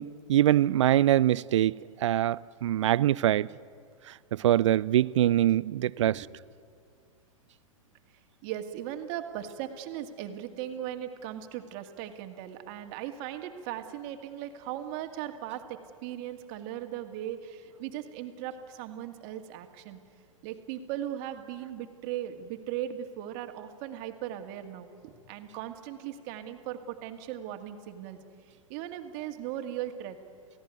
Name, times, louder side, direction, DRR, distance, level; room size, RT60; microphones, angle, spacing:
voice 1, 0.0-1.7 2.0-3.5 4.3-6.1, right 12 dB, 60° right, 0.5 m, -23 dB
voice 2, 5.7-6.3 8.1-20.0 20.4-28.2 28.7-30.2, right 11 dB, 40° right, 2.1 m, -38 dB
29.0 x 17.0 x 9.4 m
figure-of-eight pair, 105°, 18 cm